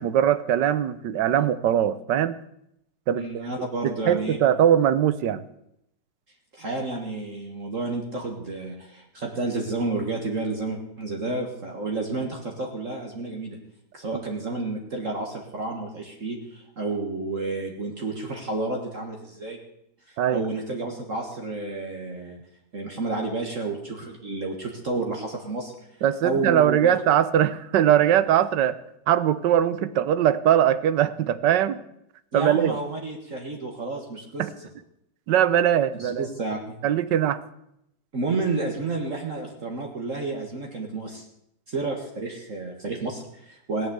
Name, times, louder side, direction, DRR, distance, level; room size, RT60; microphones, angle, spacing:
voice 1, 0.0-2.4 3.1-3.5 3.8-5.4 20.2-20.4 26.0-28.8 29.1-31.8 32.3-32.8 34.4-34.5 35.3-36.3 36.8-37.4, right 10 dB, 75° right, 15 dB, 1.4 m, -21 dB
voice 2, 3.1-4.4 6.5-13.6 13.9-19.6 20.1-22.4 22.7-25.7 26.2-27.0 32.3-34.5 36.0-36.8 38.1-41.2 41.7-43.9, right 3 dB, 45° right, 1 dB, 2.0 m, -30 dB
17.5 x 9.1 x 8.1 m, 0.78 s
omnidirectional pair, 1.9 m